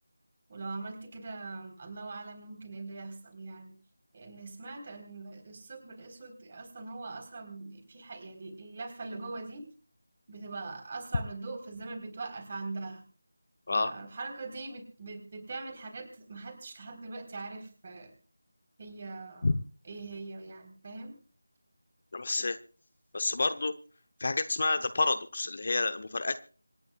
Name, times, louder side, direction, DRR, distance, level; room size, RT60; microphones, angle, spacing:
voice 1, 0.5-3.7 4.1-9.7 10.3-13.0 13.7-18.1 18.8-19.5 19.8-21.2, right 3 dB, 30° right, 5 dB, 3.8 m, -42 dB
voice 2, 22.1-22.6 23.1-23.7 24.2-26.4, left 3 dB, 40° left, 10 dB, 0.8 m, -29 dB
26.5 x 10.5 x 2.4 m, 0.37 s
figure-of-eight pair, 165°, 0 cm